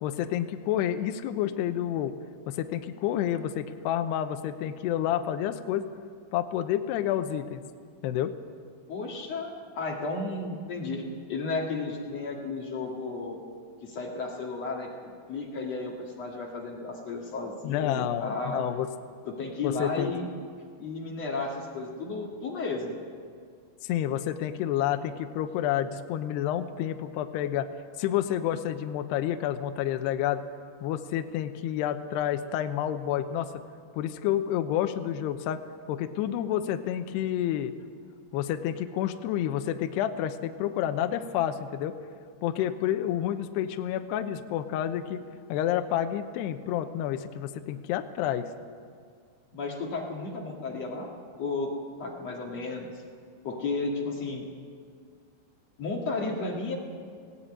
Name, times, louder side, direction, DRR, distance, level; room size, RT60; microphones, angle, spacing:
voice 1, 0.0-2.1 2.5-5.9 6.3-7.6 8.0-8.3 17.6-18.9 19.6-20.1 23.9-27.7 28.0-30.4 30.8-33.5 33.9-35.6 35.9-37.8 38.3-41.9 42.4-45.2 45.5-48.5, left 11 dB, 85° left, 8 dB, 2.4 m, -29 dB
voice 2, 8.9-11.0 11.3-13.4 13.8-14.9 15.3-18.6 19.3-20.3 20.8-23.0 49.5-51.1 51.4-51.7 52.0-52.9 53.4-54.4 55.8-56.8, left 3 dB, 50° left, -1 dB, 2.0 m, -33 dB
19.0 x 17.0 x 8.7 m, 2.1 s
omnidirectional pair, 5.9 m